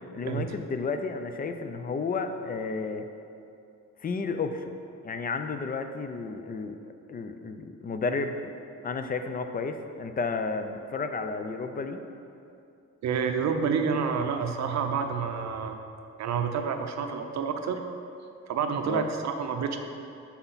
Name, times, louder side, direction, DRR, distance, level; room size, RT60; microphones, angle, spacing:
voice 1, 0.1-3.0 4.0-4.7 5.0-8.5 8.8-12.0 18.8-19.0, left 4 dB, 30° left, 8 dB, 0.4 m, -32 dB
voice 2, 13.0-15.8 16.2-17.8 18.5-19.8, right 6 dB, 65° right, 6 dB, 0.6 m, -28 dB
5.8 x 5.7 x 4.1 m, 2.6 s
cardioid pair, 90°, 30 cm